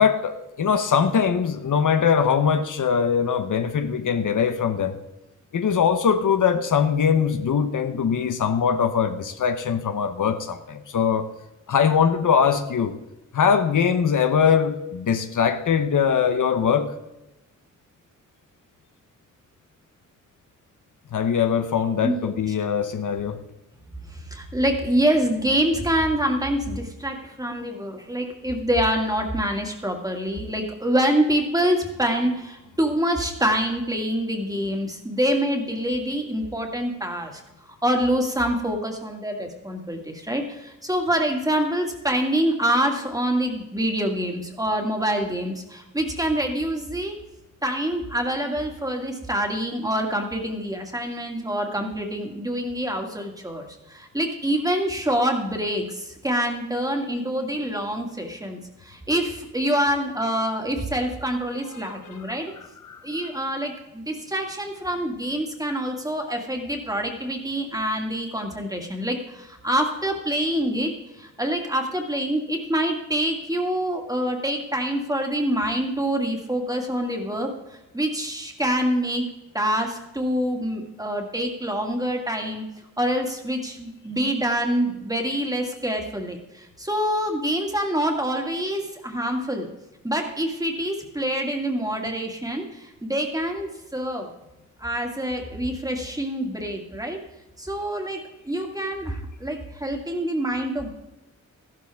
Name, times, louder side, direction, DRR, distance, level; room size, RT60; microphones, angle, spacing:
voice 1, 0.0-5.0 5.5-11.3 11.7-13.0 13.3-16.9 21.1-23.4 61.8-62.3 62.8-63.0, left 7 dB, 75° left, 8 dB, 1.0 m, -22 dB
voice 2, 24.1-37.4 37.8-47.1 47.6-62.5 63.0-79.2 79.5-82.6 83.0-89.7 90.0-94.3 94.8-97.2 97.6-100.9, equal, 10° right, 2 dB, 2.1 m, -26 dB
14.5 x 12.0 x 3.6 m, 0.96 s
wide cardioid pair, 120°, 31 cm